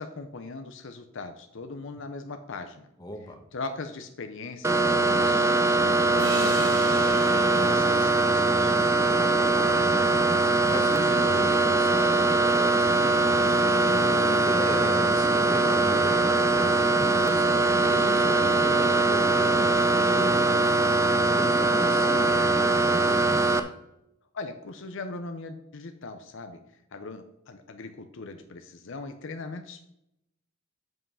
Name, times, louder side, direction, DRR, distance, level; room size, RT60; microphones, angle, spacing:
voice 1, 0.0-2.9 3.5-8.8 24.3-26.6 26.9-29.9, left 3 dB, 60° left, 8 dB, 0.6 m, -39 dB
voice 2, 3.0-3.4 9.0-10.3 10.7-13.6 14.1-17.6 17.9-20.4 21.4-23.5, left 1 dB, 20° left, 3 dB, 1.3 m, -37 dB
sound 1, 4.6-23.6, right 2 dB, 15° right, 0.5 m, -22 dB
sound 2, 6.2-9.5, right 3 dB, 80° right, 3.1 m, -40 dB
7.6 x 5.5 x 5.5 m, 0.82 s
head